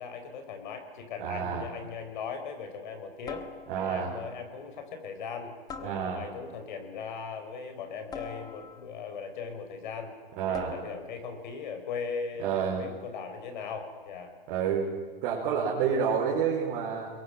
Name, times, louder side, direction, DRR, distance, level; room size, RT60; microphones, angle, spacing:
voice 1, 0.0-3.5 3.8-10.1 10.5-14.3, left 5 dB, 55° left, 6 dB, 4.6 m, -39 dB
voice 2, 1.2-1.7 3.7-4.1 5.8-6.2 10.4-10.7 12.4-12.8 14.5-14.9 15.2-17.1, right 7 dB, 35° right, -4 dB, 4.4 m, -29 dB
sound 1, 3.3-4.1 5.7-6.5 8.1-9.1 10.5-11.1, left 5 dB, 15° left, 1.2 m, -44 dB
29.0 x 22.0 x 5.8 m, 1.5 s
hypercardioid pair, 150°, 29 cm